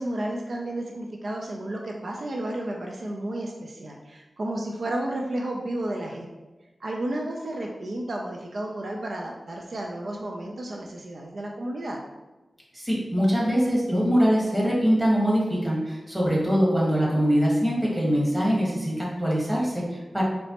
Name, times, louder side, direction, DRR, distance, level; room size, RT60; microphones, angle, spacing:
voice 1, 0.0-6.3 6.8-12.0, right 1 dB, 70° right, 0 dB, 0.4 m, -32 dB
voice 2, 12.7-20.2, equal, 15° right, -4 dB, 1.3 m, -23 dB
4.0 x 3.2 x 2.8 m, 1.1 s
wide cardioid pair, 85°, 0 cm